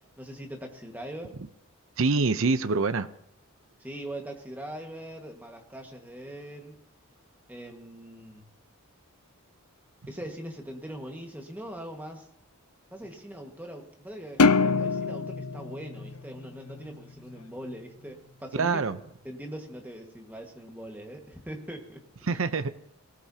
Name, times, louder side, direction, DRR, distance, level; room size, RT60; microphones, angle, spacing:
voice 1, 0.2-1.4 3.8-6.8 7.5-8.5 10.1-12.3 12.9-18.9 19.2-22.0, right 1 dB, 10° right, 2 dB, 1.6 m, -41 dB
voice 2, 2.0-3.1 18.5-19.0 22.2-22.7, right 4 dB, 65° right, 11 dB, 0.6 m, -25 dB
sound 1, 14.4-17.0, left 4 dB, 90° left, 0.7 m, -25 dB
19.5 x 18.0 x 2.8 m, 0.77 s
head